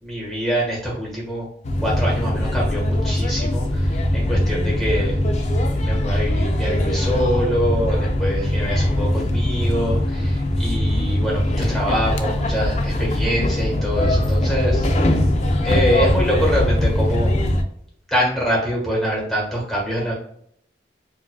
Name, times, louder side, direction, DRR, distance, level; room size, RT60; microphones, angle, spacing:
voice 1, 0.0-1.4 1.8-5.2 5.8-14.9 15.6-17.3 18.1-20.1, equal, ahead, -4 dB, 1.3 m, -24 dB
sound 1, 1.6-17.6, left 1 dB, 40° left, 0.4 m, -21 dB
4.6 x 2.5 x 2.2 m, 0.68 s
head